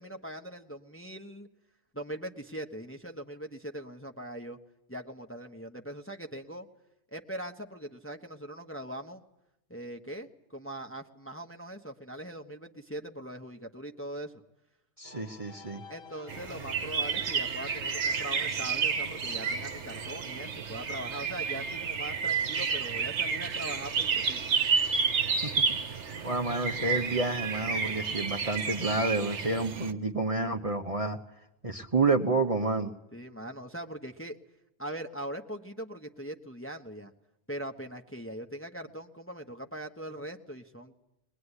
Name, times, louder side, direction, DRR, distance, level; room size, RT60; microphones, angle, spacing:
voice 1, 0.0-1.5 1.9-4.6 4.9-6.7 7.1-9.2 9.7-14.3 15.9-24.4 33.1-34.4 34.8-37.1 37.5-41.0, right 1 dB, 10° left, 3 dB, 1.1 m, -41 dB
sound 1, 15.0-20.2, left 5 dB, 50° left, 1.6 m, -52 dB
voice 2, 15.0-15.8 25.4-26.0 26.2-31.2 31.6-32.9, right 3 dB, 30° right, 4 dB, 1.1 m, -29 dB
sound 2, 16.3-29.9, right 5 dB, 65° right, 1.4 m, -31 dB
21.5 x 21.0 x 9.9 m, 0.86 s
omnidirectional pair, 1.3 m